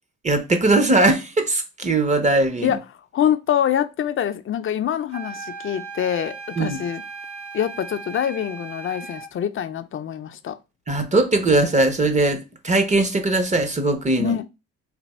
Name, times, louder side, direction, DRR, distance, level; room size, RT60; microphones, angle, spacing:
voice 1, 0.2-2.7 6.6-6.8 10.9-14.3, right 2 dB, 25° right, 0.7 m, -20 dB
voice 2, 3.1-7.0 7.5-10.6 14.2-14.5, left 9 dB, 45° left, 0.5 m, -25 dB
sound 1, 5.1-9.4, right 4 dB, 50° right, 1.3 m, -37 dB
3.4 x 2.6 x 4.1 m
cardioid pair, 90°, 30 cm